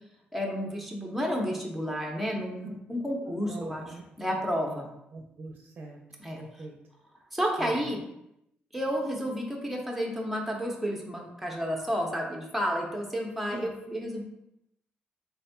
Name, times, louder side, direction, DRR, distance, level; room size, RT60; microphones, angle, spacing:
voice 1, 0.3-3.8 4.2-4.9 6.2-6.4 7.3-8.1 8.7-14.2, equal, ahead, -1 dB, 0.9 m, -31 dB
voice 2, 3.5-4.0 4.6-4.8 5.1-6.0 6.4-6.8 7.6-8.0 13.5-13.8, right 2 dB, 50° right, 1 dB, 0.5 m, -42 dB
4.0 x 3.6 x 2.3 m, 0.81 s
supercardioid pair, 65°, 4 cm